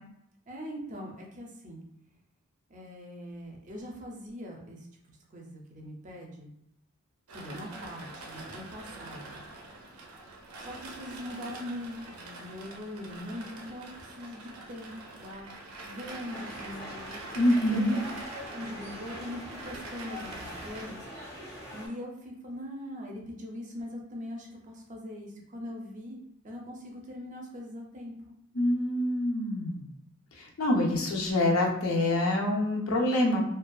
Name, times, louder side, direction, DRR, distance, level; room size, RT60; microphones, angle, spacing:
voice 1, 0.5-1.8 2.7-4.9 5.3-6.5 7.3-9.4 10.6-14.9 15.2-15.4 15.8-17.2 17.7-18.0 18.3-21.1 21.7-28.1, left 1 dB, 35° right, 0 dB, 0.4 m, -41 dB
sound 1, 7.3-20.9, right 2 dB, 85° right, 0.5 m, -45 dB
sound 2, 16.3-21.9, equal, 15° left, 0.7 m, -43 dB
voice 2, 17.3-18.0 28.5-29.8 30.4-33.4, left 1 dB, 75° left, -1 dB, 0.6 m, -26 dB
2.5 x 2.2 x 2.3 m, 0.74 s
head